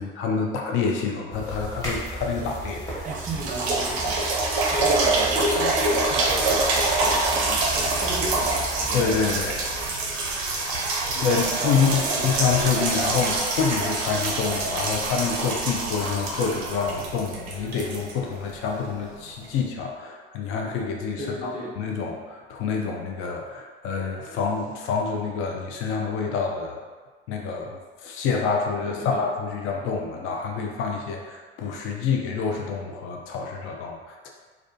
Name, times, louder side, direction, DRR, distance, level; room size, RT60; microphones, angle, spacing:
voice 1, 0.0-3.0 8.9-9.7 11.2-26.8 27.3-34.3, left 5 dB, 40° left, 0 dB, 0.4 m, -27 dB
sound 1, 1.3-9.9, right 1 dB, 10° left, 1.1 m, -36 dB
voice 2, 3.0-9.2 11.1-12.3 13.2-13.4 21.2-21.8 28.8-29.3, right 2 dB, 25° right, -2 dB, 0.6 m, -35 dB
sound 2, 3.1-18.8 19.4-19.5, right 2 dB, 75° right, 0.6 m, -25 dB
2.3 x 2.3 x 2.5 m, 1.5 s
hypercardioid pair, 75°, 32 cm